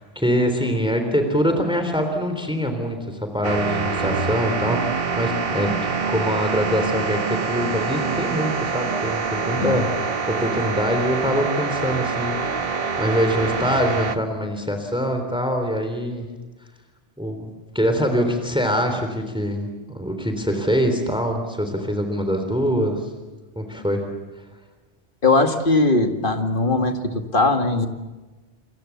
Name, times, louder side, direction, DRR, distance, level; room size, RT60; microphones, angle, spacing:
voice 1, 0.0-5.8 6.1-16.3 17.2-17.5 17.8-23.1 23.6-24.0, equal, 5° right, 6 dB, 3.5 m, -24 dB
sound 1, 3.4-14.2, right 5 dB, 55° right, 1.5 m, -25 dB
voice 2, 25.2-27.9, left 2 dB, 45° left, 5 dB, 2.3 m, -20 dB
28.5 x 23.5 x 7.2 m, 1.2 s
omnidirectional pair, 1.2 m